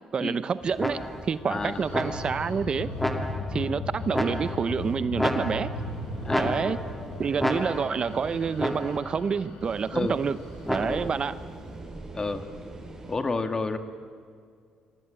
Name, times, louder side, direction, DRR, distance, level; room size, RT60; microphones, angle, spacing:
voice 1, 0.1-2.9 3.5-5.7 6.4-6.8 7.2-10.4 10.7-11.4, right 6 dB, 40° right, 14 dB, 0.8 m, -28 dB
sound 1, 0.6-3.7 4.0-5.0 5.4-9.0 9.6-13.2, right 2 dB, 25° right, 7.9 m, -43 dB
sound 2, 0.8-1.4 1.9-2.5 3.0-3.6 4.1-4.8 5.2-5.9 6.3-7.0 7.4-8.1 8.6-9.2 10.7-11.3, left 1 dB, 5° left, 2.2 m, -31 dB
sound 3, 1.4-11.1, left 2 dB, 65° left, 7.8 m, -37 dB
voice 2, 1.5-1.8 6.2-6.8 9.9-10.2 10.8-11.1 12.1-12.5 13.1-13.8, left 3 dB, 25° left, 7 dB, 2.4 m, -30 dB
27.0 x 24.5 x 9.0 m, 2.2 s
supercardioid pair, 80°, 2 cm